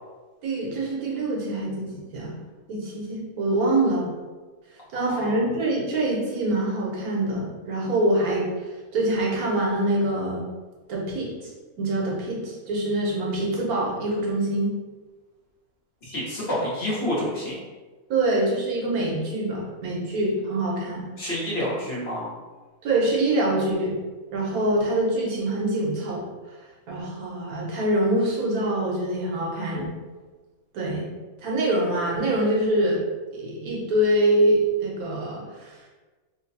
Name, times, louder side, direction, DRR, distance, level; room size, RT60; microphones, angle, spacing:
voice 1, 0.4-1.9 2.1-2.3 2.7-4.1 4.9-8.5 8.9-10.4 10.9-11.5 11.8-14.7 18.1-21.1 22.8-23.9 24.3-26.2 26.9-29.9 30.7-31.1 31.4-33.0 33.3-35.7, right 1 dB, 85° right, -3 dB, 1.3 m, -24 dB
voice 2, 4.9-5.4 16.0-17.6 21.2-22.3, left 1 dB, 50° left, -6 dB, 1.1 m, -29 dB
3.2 x 2.2 x 4.1 m, 1.3 s
omnidirectional pair, 1.5 m